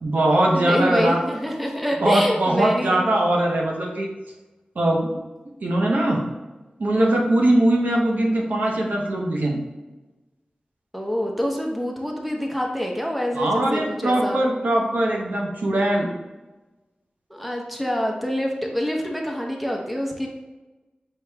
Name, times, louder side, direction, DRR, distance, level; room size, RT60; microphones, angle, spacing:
voice 1, 0.0-1.2 2.0-4.1 4.8-5.2 5.6-6.2 6.8-9.6 13.3-16.1, right 1 dB, 75° right, -1 dB, 0.8 m, -21 dB
voice 2, 0.5-3.0 10.9-14.4 17.3-20.3, equal, ahead, 0 dB, 0.8 m, -26 dB
4.7 x 3.0 x 3.4 m, 1.1 s
wide cardioid pair, 55°, 3 cm